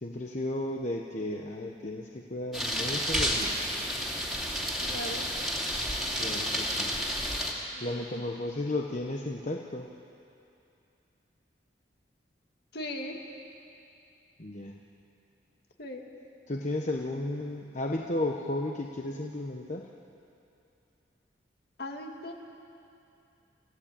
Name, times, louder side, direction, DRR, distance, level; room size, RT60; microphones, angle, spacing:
voice 1, 0.0-3.9 6.2-6.9 7.8-9.9 14.4-14.7 16.5-19.9, left 1 dB, 40° left, 1 dB, 1.1 m, -34 dB
sound 1, 2.5-7.5, equal, ahead, 2.7 m, -31 dB
voice 2, 4.8-5.3 7.7-8.5 12.7-13.2 15.8-16.1 21.8-22.3, left 1 dB, 60° left, 2 dB, 2.2 m, -39 dB
27.5 x 15.0 x 8.8 m, 2.7 s
head